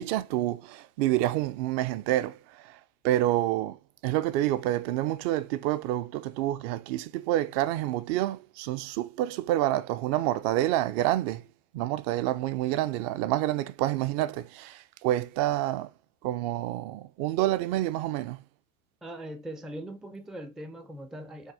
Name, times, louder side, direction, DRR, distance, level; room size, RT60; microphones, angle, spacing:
voice 1, 0.0-2.8 3.0-11.5 11.7-15.9 16.2-18.4, right 14 dB, 45° right, 0.6 m, -28 dB
voice 2, 19.0-21.5, right 1 dB, ahead, 0.4 m, -40 dB
5.5 x 3.5 x 4.8 m
hypercardioid pair, 120°, 43 cm